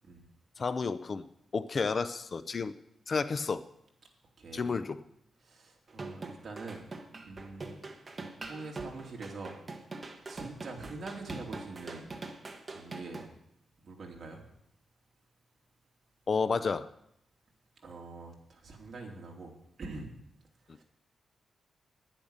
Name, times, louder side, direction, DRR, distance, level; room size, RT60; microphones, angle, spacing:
voice 1, 0.6-1.3 1.5-2.8 3.1-3.7 4.5-5.0 16.3-16.9, left 4 dB, 40° left, 13 dB, 0.5 m, -31 dB
voice 2, 4.4-4.7 5.4-7.8 8.1-9.6 10.3-12.1 12.7-13.3 13.8-14.4 17.8-20.1 20.6-20.8, right 3 dB, 45° right, 0 dB, 2.9 m, -44 dB
sound 1, 5.9-13.3, right 3 dB, 30° right, 1.3 m, -43 dB
10.5 x 10.5 x 6.6 m, 0.76 s
wide cardioid pair, 125°, 0 cm